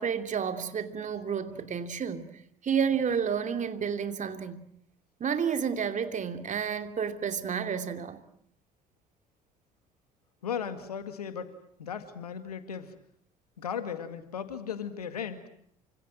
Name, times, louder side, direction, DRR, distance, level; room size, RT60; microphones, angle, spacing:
voice 1, 0.0-2.3 2.6-4.7 5.2-8.2, right 7 dB, 40° right, 2.8 m, -30 dB
voice 2, 10.4-11.5 11.8-12.9 13.6-15.4, left 7 dB, 85° left, 2.2 m, -36 dB
28.5 x 26.0 x 7.6 m
hypercardioid pair, 55°, 19 cm